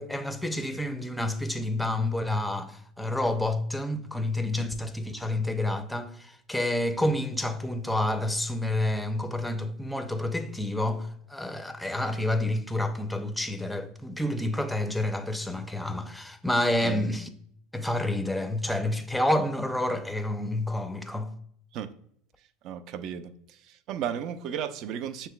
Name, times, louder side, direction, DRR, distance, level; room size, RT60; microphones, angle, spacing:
voice 1, 0.0-17.3 17.7-21.3, left 1 dB, 5° left, 0.5 m, -29 dB
voice 2, 22.6-25.3, right 8 dB, 55° right, 0.4 m, -35 dB
6.7 x 3.1 x 2.2 m
supercardioid pair, 110°, 0 cm